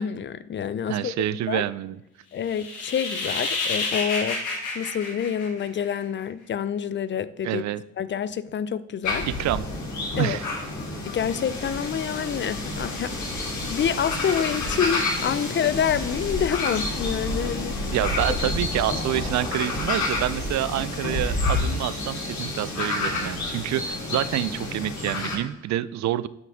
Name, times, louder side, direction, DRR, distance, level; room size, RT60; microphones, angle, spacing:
voice 1, 0.0-1.6 2.3-4.5 4.7-7.6 8.0-9.3 10.1-10.4 11.1-13.1 13.7-18.0, left 8 dB, 40° left, 16 dB, 0.4 m, -27 dB
voice 2, 0.9-2.0 7.4-7.8 9.3-9.7 10.2-10.5 17.9-26.3, right 13 dB, 65° right, 17 dB, 0.4 m, -27 dB
sound 1, 2.4-6.0, left 3 dB, 85° left, 2.2 m, -29 dB
sound 2, 9.0-25.3, left 2 dB, 70° left, 2.9 m, -29 dB
9.2 x 6.0 x 3.5 m, 0.88 s
cardioid pair, 90°, 30 cm